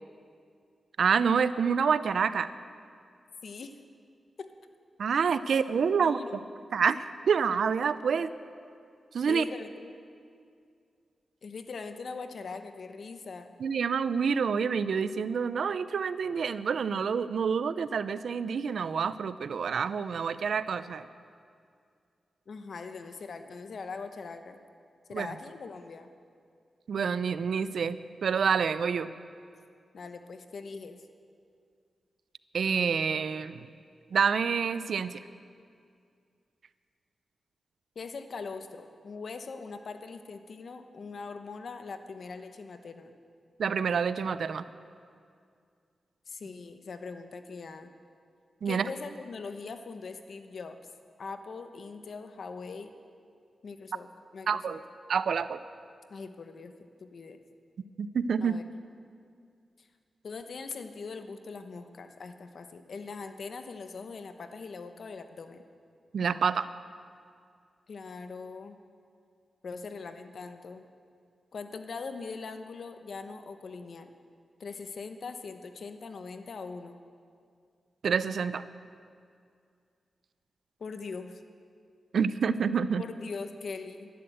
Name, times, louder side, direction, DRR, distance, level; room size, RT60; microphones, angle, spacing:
voice 1, 1.0-2.5 5.0-6.4 6.7-8.3 9.1-9.4 13.6-21.1 25.1-25.3 26.9-29.1 32.5-33.6 34.1-35.1 43.6-44.7 48.6-48.9 54.5-54.8 55.1-55.6 58.0-58.6 66.1-66.7 78.0-78.6 82.1-83.0, right 6 dB, 80° right, 14 dB, 0.5 m, -27 dB
voice 2, 3.4-3.7 4.4-4.5 5.5-5.6 6.0-6.5 9.3-9.9 11.4-13.5 22.5-24.6 25.1-26.1 29.9-31.0 37.9-43.1 46.3-47.9 48.6-50.8 51.2-52.9 53.6-54.8 56.1-56.7 57.0-57.4 58.4-58.6 59.8-59.9 60.2-65.6 67.9-68.8 69.6-70.8 71.5-74.1 74.6-77.0 80.8-81.4 83.0-84.1, left 4 dB, 70° left, 8 dB, 1.0 m, -41 dB
12.0 x 11.5 x 7.9 m, 2.3 s
cardioid pair, 60°, 0 cm